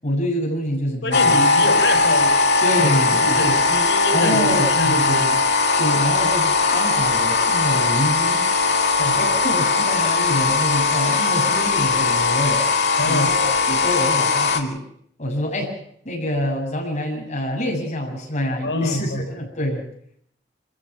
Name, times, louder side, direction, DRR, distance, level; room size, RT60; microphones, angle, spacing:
voice 1, 0.0-1.4 2.6-3.4 4.1-4.6 5.8-8.4 9.2-12.6 13.0-14.8 15.2-15.7 16.0-19.8, left 1 dB, 40° left, -1 dB, 7.6 m, -26 dB
voice 2, 1.0-2.3 2.8-5.4 9.0-9.2 13.0-13.4 18.6-19.2, left 1 dB, 85° left, 4 dB, 5.6 m, -25 dB
sound 1, 1.1-14.6, left 3 dB, 70° left, 2.5 m, -19 dB
26.5 x 15.0 x 7.6 m, 0.68 s
head